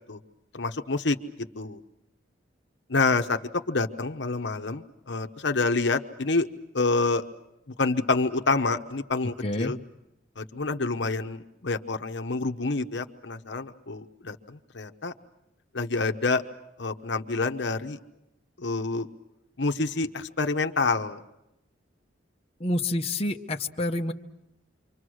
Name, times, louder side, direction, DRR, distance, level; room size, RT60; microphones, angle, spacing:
voice 1, 0.5-1.2 1.6-1.8 2.9-3.4 3.7-6.5 6.7-7.2 7.8-9.8 10.4-15.1 15.7-16.4 16.8-18.0 18.6-19.1 19.6-21.2, left 3 dB, 65° left, 6 dB, 1.0 m, -27 dB
voice 2, 9.4-9.7 22.6-24.1, left 1 dB, 30° left, 2 dB, 1.0 m, -28 dB
28.0 x 24.5 x 6.4 m, 0.89 s
head